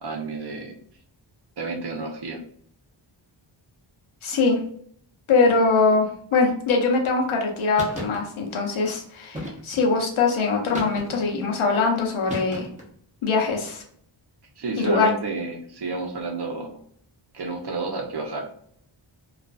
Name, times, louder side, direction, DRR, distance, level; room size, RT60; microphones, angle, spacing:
voice 1, 0.0-0.7 1.6-2.4 14.6-16.8 17.3-18.5, right 3 dB, 55° right, 2 dB, 0.6 m, -30 dB
voice 2, 4.2-4.6 5.3-12.7 13.2-13.8 14.8-15.1, left 4 dB, 85° left, 1 dB, 0.7 m, -22 dB
sound 1, 7.8-8.2 9.3-9.9 10.7-11.4 12.3-12.9, equal, 15° right, 0.7 m, -35 dB
2.4 x 2.3 x 2.2 m, 0.63 s
wide cardioid pair, 95°, 48 cm